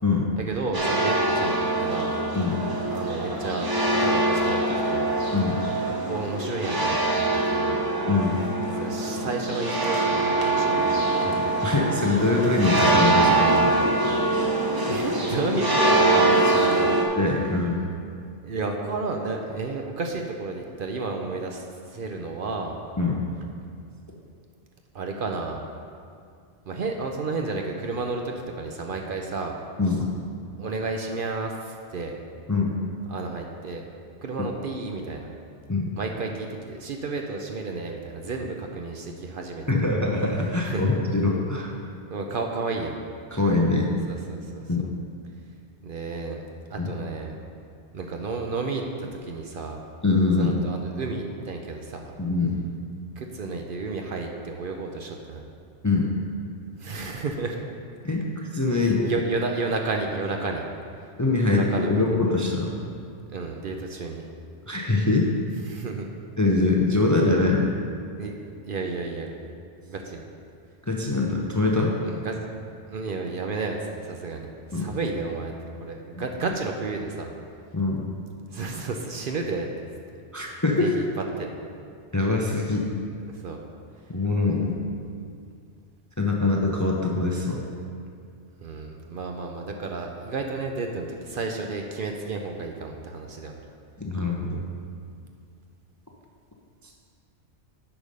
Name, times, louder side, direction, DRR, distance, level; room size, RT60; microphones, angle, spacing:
voice 1, 0.4-2.1 2.9-3.7 4.0-4.6 4.9-5.1 6.1-7.8 8.8-11.1 14.8-17.0 18.4-21.6 21.9-22.8 24.9-25.6 26.7-29.6 30.6-32.1 33.1-33.8 34.2-35.3 36.0-39.8 40.7-40.8 42.1-43.0 44.3-44.6 45.8-46.4 46.7-47.4 47.9-49.8 50.4-52.1 53.2-55.4 56.8-57.6 58.7-60.6 61.5-62.0 63.3-64.3 65.7-66.1 68.2-69.3 69.8-70.2 72.0-72.4 72.9-75.5 75.8-77.3 78.5-79.7 80.1-80.5 80.8-81.1 81.4-81.5 83.3-83.6 88.6-93.6, right 3 dB, 55° right, 3 dB, 0.7 m, -32 dB
sound 1, 0.7-17.0, right 2 dB, 20° right, 0.9 m, -23 dB
voice 2, 5.3-5.8 8.1-8.4 11.2-13.7 17.2-17.8 23.0-23.3 29.8-30.1 32.5-32.7 35.7-35.9 39.7-41.7 43.3-43.9 44.7-44.9 46.8-46.9 50.0-50.6 52.2-52.6 55.8-56.1 58.0-59.2 61.2-62.8 64.7-65.3 66.4-67.7 70.9-72.0 74.7-74.9 77.7-78.0 80.3-80.9 82.1-82.9 84.1-84.8 86.2-87.6 94.0-94.6, left 3 dB, 20° left, -1 dB, 0.5 m, -23 dB
8.7 x 5.0 x 5.4 m, 2.3 s
omnidirectional pair, 1.2 m